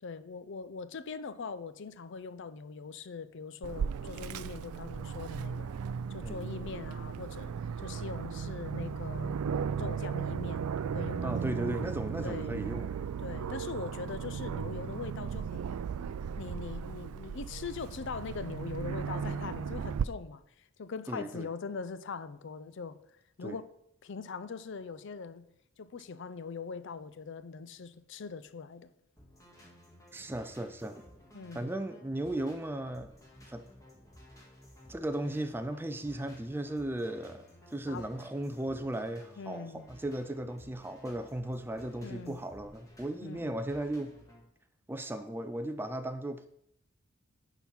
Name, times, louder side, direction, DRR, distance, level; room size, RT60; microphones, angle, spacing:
voice 1, 0.0-5.7 6.1-7.5 7.8-9.3 9.8-11.6 12.2-12.5 13.2-15.7 16.4-23.0 23.4-23.6 24.0-25.4 25.8-28.9 31.3-31.7 37.9-38.1 39.4-39.9 42.0-42.4 43.2-43.5, left 5 dB, 55° left, 0.4 m, -41 dB
Aircraft, 3.6-20.0, right 7 dB, 85° right, 0.4 m, -36 dB
voice 2, 11.2-12.9 21.1-21.5 23.4-23.6 30.1-31.1 31.5-33.1 33.5-33.7 34.9-44.2 44.9-46.5, right 1 dB, 10° right, 0.3 m, -36 dB
sound 1, 29.2-44.4, equal, 15° left, 1.7 m, -56 dB
10.0 x 3.9 x 5.8 m
head